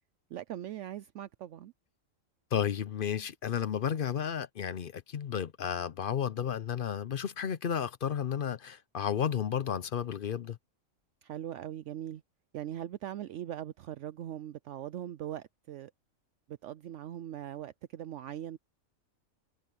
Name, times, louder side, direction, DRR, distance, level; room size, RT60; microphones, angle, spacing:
voice 1, 0.3-1.7 11.2-12.2 12.5-15.9 16.6-18.6, right 11 dB, 70° right, 0.8 m, -40 dB
voice 2, 2.5-10.6, left 8 dB, 55° left, 0.7 m, -32 dB
omnidirectional pair, 1.4 m